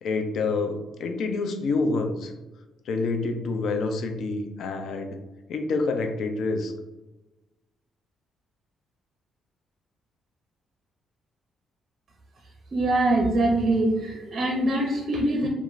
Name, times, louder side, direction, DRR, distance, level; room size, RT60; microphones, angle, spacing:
voice 1, 0.0-2.3 2.9-5.2 5.5-6.7, left 3 dB, 70° left, 5 dB, 0.4 m, -27 dB
voice 2, 12.7-15.5, right 1 dB, 45° right, -1 dB, 0.5 m, -23 dB
2.9 x 2.4 x 2.5 m, 1.1 s
cardioid pair, 90°, 0 cm